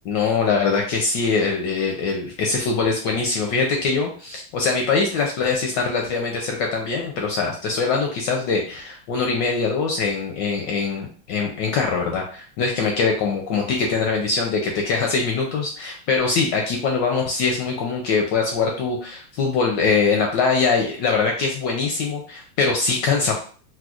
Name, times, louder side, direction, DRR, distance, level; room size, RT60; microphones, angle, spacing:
voice 1, 0.1-23.3, left 4 dB, 75° left, 1 dB, 1.0 m, -22 dB
4.2 x 2.2 x 2.3 m, 0.42 s
omnidirectional pair, 2.3 m